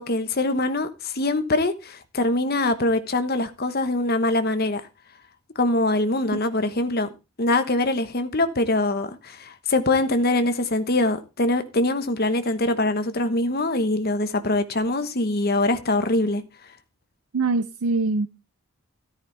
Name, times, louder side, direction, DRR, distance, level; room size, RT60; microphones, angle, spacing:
voice 1, 0.0-4.8 5.6-7.1 7.4-16.4, left 2 dB, 45° left, 1.1 m, -23 dB
voice 2, 17.3-18.3, right 3 dB, 70° right, 0.5 m, -23 dB
13.5 x 9.3 x 3.3 m
head